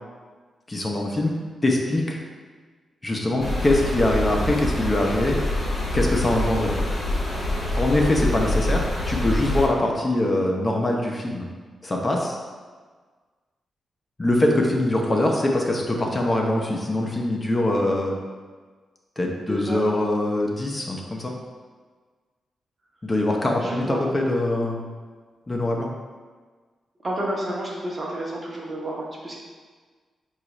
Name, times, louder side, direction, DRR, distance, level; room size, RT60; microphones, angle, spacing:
voice 1, 0.7-1.3 1.6-2.2 3.0-5.4 5.9-6.7 7.8-11.5 11.8-12.4 14.2-18.2 19.2-21.3 23.0-24.8 25.5-25.9, left 1 dB, 30° left, 0 dB, 0.5 m, -23 dB
sound 1, 3.4-9.7, left 1 dB, 65° left, 0.7 m, -25 dB
voice 2, 19.4-19.8 23.6-24.1 27.0-29.4, right 1 dB, 40° right, -3 dB, 0.8 m, -30 dB
3.9 x 2.3 x 3.0 m, 1.5 s
cardioid pair, 55°, 0 cm